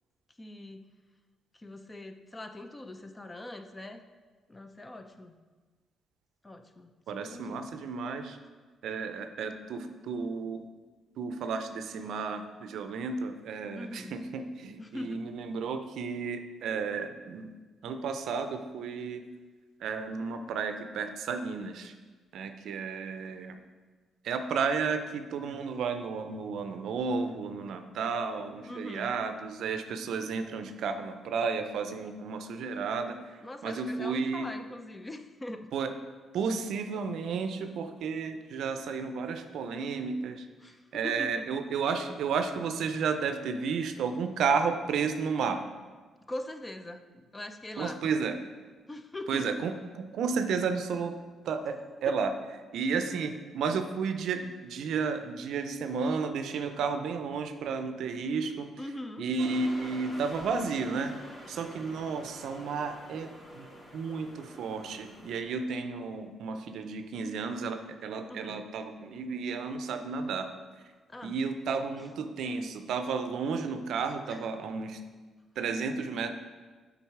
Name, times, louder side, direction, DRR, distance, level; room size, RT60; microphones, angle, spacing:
voice 1, 0.4-0.8 1.5-4.0 4.5-5.3 6.4-7.8 13.8-14.2 14.8-15.2 28.7-29.1 33.4-35.7 40.6-41.4 46.3-48.1 48.9-49.5 52.1-52.2 58.8-59.3 68.3-68.7 71.1-71.3 74.3-74.4, left 1 dB, 20° left, 7 dB, 0.5 m, -42 dB
voice 2, 7.1-8.4 8.8-10.6 11.2-17.5 17.8-19.2 19.8-21.9 22.3-23.6 24.2-34.5 35.7-35.9 36.3-40.5 40.9-45.6 47.8-48.4 49.3-51.1 51.4-52.3 52.7-58.7 59.2-61.1 61.5-63.7 63.9-70.5 71.2-75.0 75.6-76.3, right 5 dB, 75° right, 8 dB, 0.5 m, -32 dB
sound 1, 59.4-65.4, equal, 35° left, 1.7 m, -47 dB
7.1 x 3.9 x 4.7 m, 1.4 s
cardioid pair, 90°, 0 cm